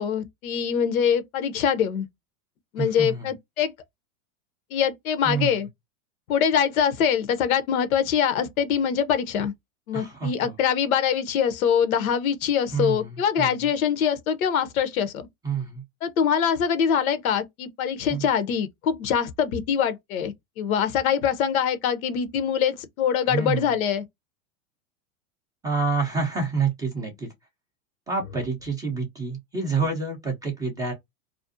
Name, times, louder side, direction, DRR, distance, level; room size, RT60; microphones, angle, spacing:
voice 1, 0.0-2.1 2.7-3.7 4.7-5.7 6.3-9.5 9.9-15.2 16.0-24.0, left 8 dB, 80° left, 0.7 m, -24 dB
voice 2, 2.8-3.3 5.2-5.6 9.9-10.5 12.7-13.5 15.4-15.8 18.1-18.3 23.3-23.7 25.6-27.3 28.1-30.9, right 4 dB, 10° right, 0.3 m, -28 dB
2.5 x 2.0 x 2.4 m
hypercardioid pair, 120°, 41 cm